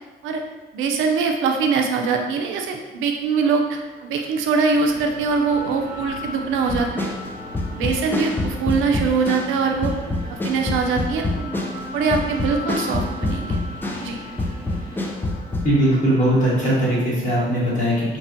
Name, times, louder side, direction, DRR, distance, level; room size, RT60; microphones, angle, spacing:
voice 1, 0.7-7.1 7.7-9.9 10.3-11.5 11.9-13.6 14.0-14.2, right 5 dB, 85° right, 4 dB, 0.4 m, -22 dB
sound 1, 2.8-17.0, left 1 dB, 70° left, 0.9 m, -39 dB
sound 2, 4.7-15.1, equal, 45° right, 0.8 m, -41 dB
sound 3, 6.7-9.6 9.8-14.1 14.4-15.6, left 2 dB, 10° left, 0.3 m, -26 dB
voice 2, 15.6-18.2, right 1 dB, 40° left, -7 dB, 1.3 m, -19 dB
3.2 x 2.1 x 2.6 m, 1.2 s
cardioid pair, 90°, 20 cm